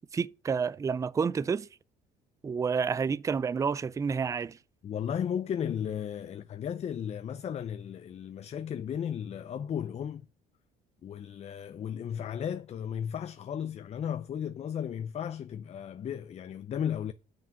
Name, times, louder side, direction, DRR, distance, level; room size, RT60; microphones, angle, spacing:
voice 1, 0.1-1.7 2.4-4.6, right 6 dB, 20° right, 0.4 m, -29 dB
voice 2, 4.8-10.2 11.0-17.1, left 8 dB, 40° left, 0.5 m, -35 dB
7.3 x 6.0 x 7.5 m
cardioid pair, 110°, 17 cm